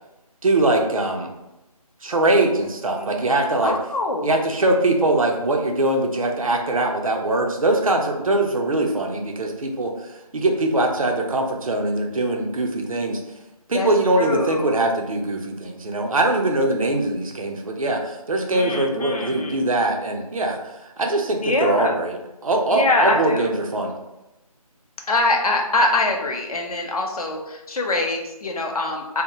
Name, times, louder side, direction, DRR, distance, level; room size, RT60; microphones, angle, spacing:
voice 1, 0.4-1.3 2.0-3.7 4.2-13.2 13.7-22.2 22.4-23.9, right 2 dB, 60° right, 2 dB, 0.5 m, -22 dB
voice 2, 2.9-4.3 13.7-13.9 14.2-14.7 18.5-19.6 21.4-22.0 22.7-23.5 25.1-29.2, left 2 dB, 70° left, 1 dB, 0.6 m, -24 dB
2.3 x 2.0 x 2.9 m, 0.96 s
figure-of-eight pair, 170°, 20 cm